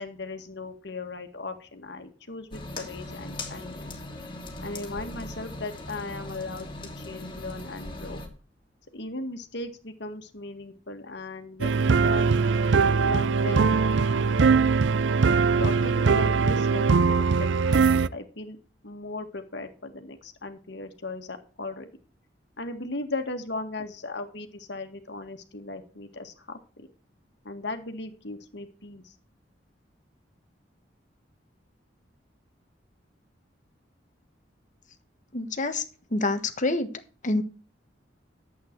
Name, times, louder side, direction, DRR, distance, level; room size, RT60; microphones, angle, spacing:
voice 1, 0.0-4.0 4.6-8.2 8.9-12.3 13.0-13.8 15.6-18.6 18.8-21.9 22.6-26.9 27.4-29.1, left 2 dB, 70° left, 6 dB, 1.9 m, -37 dB
sound 1, 2.5-8.3, left 2 dB, 30° left, 2.9 m, -39 dB
sound 2, 11.6-18.1, right 5 dB, 80° right, 0.5 m, -21 dB
voice 2, 35.3-35.8 36.1-36.9 37.2-37.4, left 2 dB, 45° left, 9 dB, 1.3 m, -26 dB
11.5 x 8.4 x 4.6 m, 0.37 s
head